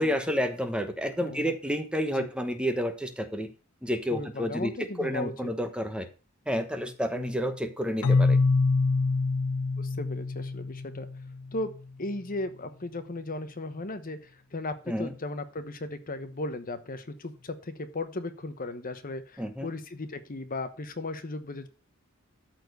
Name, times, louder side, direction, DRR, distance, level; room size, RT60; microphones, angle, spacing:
voice 1, 0.0-3.5 3.8-4.7 5.0-6.1 6.5-8.4 14.9-15.1 19.4-19.7, equal, 5° right, 7 dB, 1.2 m, -30 dB
voice 2, 1.2-1.5 2.1-2.3 4.1-5.5 7.1-7.3 9.8-11.1 11.5-21.7, left 2 dB, 40° left, 10 dB, 1.0 m, -36 dB
Keyboard (musical), 8.0-11.7, left 3 dB, 80° left, 0.5 m, -25 dB
13.0 x 4.5 x 6.7 m, 0.34 s
head